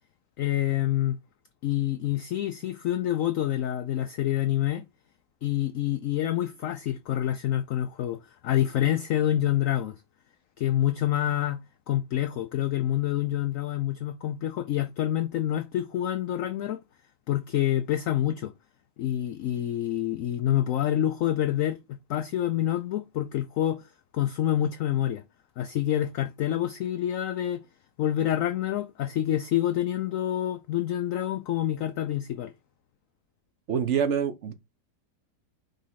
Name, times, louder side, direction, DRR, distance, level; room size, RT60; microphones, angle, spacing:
voice 1, 0.4-1.2 1.6-4.8 5.4-8.2 8.4-10.0 10.6-11.6 11.9-16.8 17.3-18.5 19.0-21.8 22.1-23.9 24.1-25.2 25.6-27.6 28.0-32.5, left 12 dB, 65° left, 0.8 m, -27 dB
voice 2, 33.7-34.5, right 7 dB, 50° right, 1.1 m, -26 dB
5.3 x 3.7 x 5.6 m
omnidirectional pair, 1.8 m